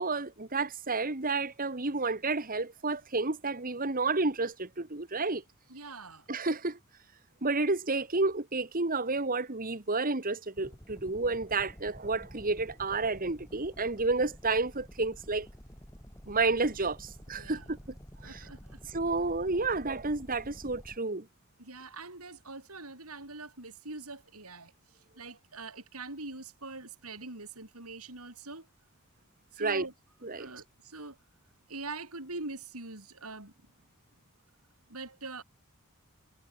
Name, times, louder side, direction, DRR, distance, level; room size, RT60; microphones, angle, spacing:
voice 1, 0.0-5.4 6.3-6.8 7.4-15.5 16.3-17.8 18.2-18.4 18.9-21.3 29.6-29.9 30.2-30.5, right 3 dB, 40° right, 1.8 m, -30 dB
voice 2, 5.7-6.2 17.3-17.7 18.2-18.8 21.6-24.7 25.2-28.7 29.5-29.9 30.3-31.2 31.7-33.5 34.9-35.4, right 3 dB, 80° right, 7.4 m, -43 dB
sound 1, 10.6-21.0, equal, 15° left, 3.8 m, -50 dB
head